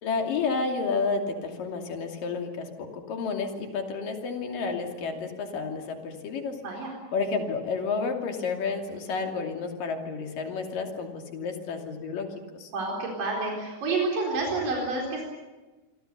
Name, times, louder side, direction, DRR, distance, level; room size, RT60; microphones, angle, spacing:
voice 1, 0.0-6.6 7.1-12.3 12.5-12.7, left 4 dB, 80° left, 3 dB, 4.4 m, -31 dB
voice 2, 6.6-6.9 12.7-15.2, right 3 dB, 75° right, -1 dB, 5.8 m, -29 dB
27.0 x 24.0 x 6.8 m, 1.2 s
omnidirectional pair, 3.8 m